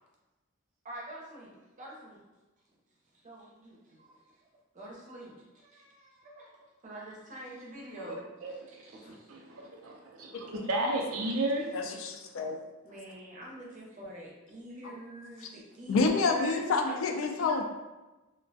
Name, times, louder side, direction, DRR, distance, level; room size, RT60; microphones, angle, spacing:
voice 1, 0.8-2.2 3.2-4.1 4.7-9.4 12.8-17.6, equal, 35° right, -3 dB, 0.6 m, -46 dB
voice 2, 9.3-11.7, right 1 dB, 90° right, 0 dB, 0.5 m, -32 dB
voice 3, 11.7-12.6 15.9-17.6, left 4 dB, 65° left, 4 dB, 0.3 m, -28 dB
2.3 x 2.1 x 2.6 m, 1.1 s
head